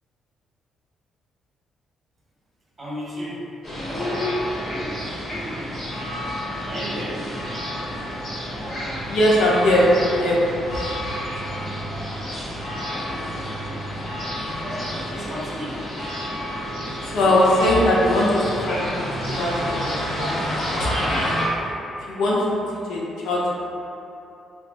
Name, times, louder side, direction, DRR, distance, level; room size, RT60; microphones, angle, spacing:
voice 1, 2.8-3.4 6.7-7.2 11.4-11.9 13.3-13.4 14.6-15.8, equal, 20° right, -8 dB, 1.0 m, -34 dB
sound 1, 3.6-21.5, equal, 45° left, 1.1 m, -29 dB
voice 2, 9.0-10.8 17.0-20.9 21.2-21.3 22.1-22.5 22.9-23.4, left 1 dB, 80° left, -5 dB, 0.6 m, -21 dB
2.4 x 2.1 x 3.7 m, 2.9 s
cardioid pair, 90°, 0 cm